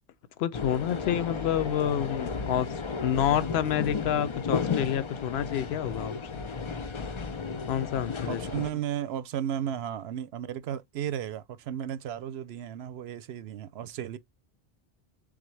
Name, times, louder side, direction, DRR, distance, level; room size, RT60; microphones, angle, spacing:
voice 1, 0.4-2.7 3.0-6.4 7.7-8.6, left 10 dB, 80° left, 0.8 m, -28 dB
sound 1, 0.5-8.7, left 5 dB, 40° left, 0.5 m, -33 dB
voice 2, 8.3-14.2, right 10 dB, 80° right, 0.8 m, -34 dB
3.8 x 3.6 x 3.1 m
omnidirectional pair, 1.1 m